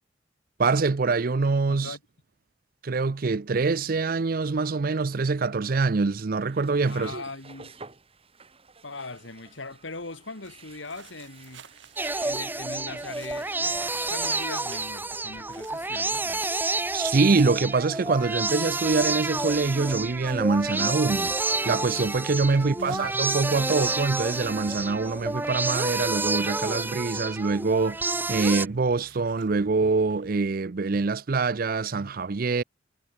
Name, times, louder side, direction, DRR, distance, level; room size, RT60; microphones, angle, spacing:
voice 1, 0.6-1.9 2.8-7.2 16.9-21.3 21.6-32.6, right 4 dB, 50° right, 0.5 m, -25 dB
voice 2, 1.7-2.0 6.8-7.7 8.8-11.7 12.2-16.5 22.6-23.2, left 3 dB, 80° left, 3.1 m, -40 dB
sound 1, 6.3-15.0, right 4 dB, 30° right, 2.5 m, -50 dB
sound 2, 10.4-30.3, right 5 dB, 75° right, 2.1 m, -53 dB
sound 3, 12.0-28.7, right 2 dB, 10° right, 1.0 m, -29 dB
head